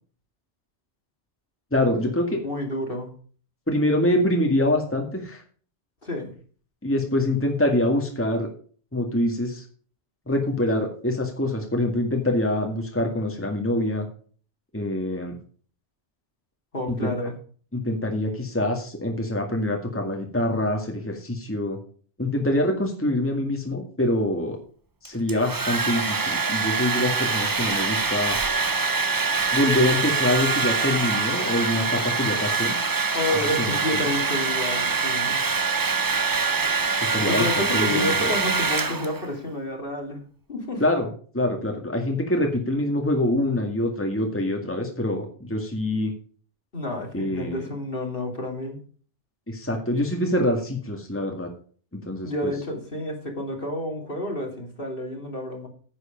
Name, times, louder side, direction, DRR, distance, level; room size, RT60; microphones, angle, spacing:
voice 1, 1.7-2.4 3.7-5.4 6.8-8.5 8.9-9.6 10.3-14.1 14.7-15.3 17.0-17.1 17.7-21.8 22.2-24.6 25.0-28.4 29.5-32.8 33.6-34.0 37.1-38.3 40.8-41.1 41.3-46.1 47.1-47.6 49.5-51.5 51.9-52.5, left 1 dB, 10° left, 2 dB, 2.0 m, -25 dB
voice 2, 2.4-3.1 6.0-6.3 16.7-17.3 33.1-35.5 37.2-40.2 40.5-40.8 46.7-48.8 52.2-55.7, left 1 dB, 50° left, 2 dB, 2.9 m, -29 dB
Domestic sounds home sounds, 25.0-39.3, right 4 dB, 25° right, 0.5 m, -24 dB
10.0 x 8.4 x 5.1 m, 0.43 s
omnidirectional pair, 1.2 m